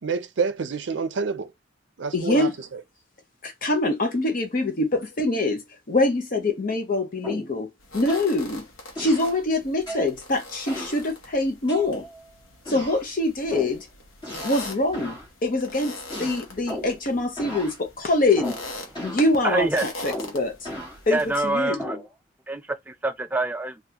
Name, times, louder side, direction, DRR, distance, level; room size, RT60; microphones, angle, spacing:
voice 1, 0.0-1.5 2.0-2.8, right 5 dB, 65° right, 0.5 m, -28 dB
voice 2, 2.1-2.5 3.4-7.7 7.9-8.6 9.0-12.1 12.7-13.9 14.4-18.6 19.0-20.7 21.1-21.8, left 2 dB, 45° left, 0.7 m, -24 dB
sound 1, 7.2-7.6 8.1-8.3 8.9-9.3 9.9-10.1 10.7-11.0 11.7-12.2 12.6-13.0 13.5-13.8 14.2-14.7 14.9-15.3 16.1-17.0 17.4-17.8 18.4-18.7 18.9-19.3 20.1-21.0 21.8-22.1, equal, 20° left, 1.8 m, -35 dB
sound 2, 7.8-21.5, left 1 dB, 85° left, 1.0 m, -42 dB
voice 3, 19.4-19.9 21.1-22.0 22.5-23.8, right 2 dB, 10° right, 0.3 m, -26 dB
3.8 x 2.4 x 2.8 m
head